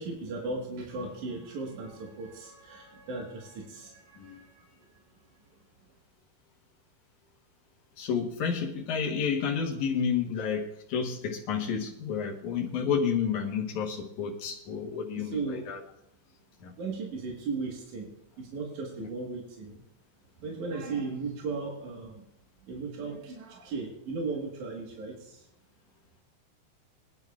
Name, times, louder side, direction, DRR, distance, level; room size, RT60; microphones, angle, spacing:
voice 1, 0.0-4.7 15.2-15.7 16.8-18.1 18.4-19.8 20.4-22.2 22.6-25.4, right 4 dB, 60° right, -2 dB, 2.2 m, -36 dB
voice 2, 8.0-15.8 16.6-16.7 19.0-19.1, left 6 dB, 80° left, -1 dB, 1.7 m, -30 dB
23.0 x 10.5 x 2.4 m, 0.78 s
omnidirectional pair, 5.4 m